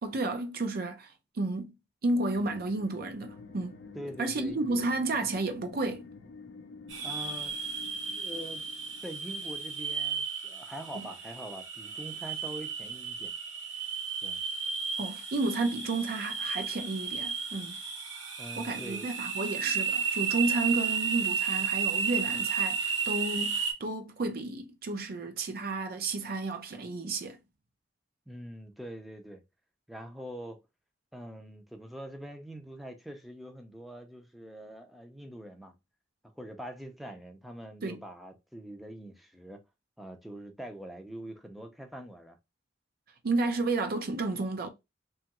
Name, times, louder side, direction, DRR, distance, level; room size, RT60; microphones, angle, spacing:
voice 1, 0.0-1.7 2.0-3.8 4.2-6.1 10.9-11.1 15.0-17.8 18.6-27.4 37.8-38.0 43.2-44.7, right 2 dB, 55° right, 0.5 m, -32 dB
sound 1, 2.3-9.9, left 3 dB, 65° left, 0.5 m, -49 dB
voice 2, 3.9-4.9 7.0-7.6 8.2-8.6 9.0-13.3 14.2-14.4 18.4-19.2 28.3-29.4 29.9-30.6 31.1-35.7 36.4-39.6 40.0-42.4, right 1 dB, ahead, 0.5 m, -44 dB
sound 2, 6.9-23.7, right 6 dB, 85° right, 1.0 m, -33 dB
3.0 x 2.3 x 2.9 m
head